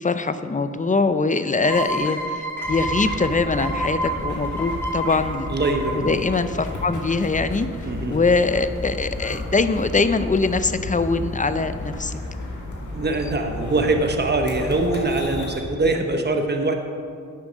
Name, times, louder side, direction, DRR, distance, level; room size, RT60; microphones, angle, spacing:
voice 1, 0.0-5.5 5.9-7.7 8.1-12.1, left 3 dB, 25° left, 11 dB, 0.5 m, -22 dB
sound 1, 1.6-7.1, right 1 dB, 10° left, 2.3 m, -29 dB
sound 2, 2.6-15.6, left 2 dB, 80° left, 1.7 m, -33 dB
voice 2, 5.5-6.0 7.8-8.2 12.9-16.7, right 2 dB, 35° right, 5 dB, 1.0 m, -23 dB
9.5 x 6.3 x 6.2 m, 2.3 s
cardioid pair, 65°, 30 cm